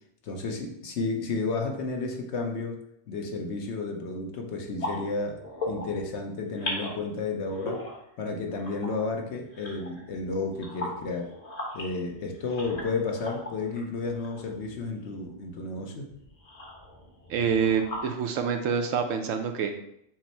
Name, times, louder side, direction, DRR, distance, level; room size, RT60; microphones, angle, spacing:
voice 1, 0.2-2.8 3.1-5.4 5.7-7.8 8.2-11.3 11.7-16.1, left 3 dB, 65° left, 2 dB, 1.0 m, -32 dB
sound 1, 4.8-6.1 6.4-7.0 7.4-10.2 10.5-15.4 16.0-18.1, left 1 dB, 35° left, 1.1 m, -39 dB
voice 2, 17.3-19.8, right 6 dB, 85° right, 5 dB, 1.0 m, -27 dB
6.1 x 2.0 x 4.3 m, 0.75 s
omnidirectional pair, 1.3 m